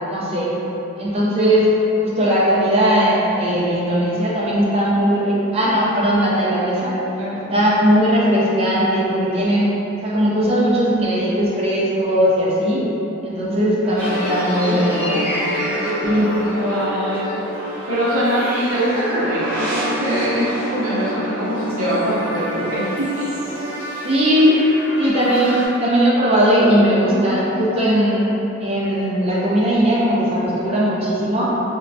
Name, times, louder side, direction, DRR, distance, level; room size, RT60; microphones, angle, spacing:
voice 1, 0.1-0.5 1.0-1.7 2.0-7.0 7.5-9.7 10.0-12.9 13.2-15.4 16.0-16.4 24.0-24.6 25.0-28.3 28.6-31.5, equal, 30° right, -6 dB, 0.4 m, -18 dB
voice 2, 7.2-7.7 13.8-14.0 14.5-17.5 17.9-23.3 25.0-25.5 27.0-27.9 30.7-30.8, equal, 75° right, -8 dB, 0.6 m, -24 dB
sound 1, 14.0-25.7, equal, 10° right, 0.8 m, -27 dB
3.0 x 2.2 x 2.6 m, 3.0 s
head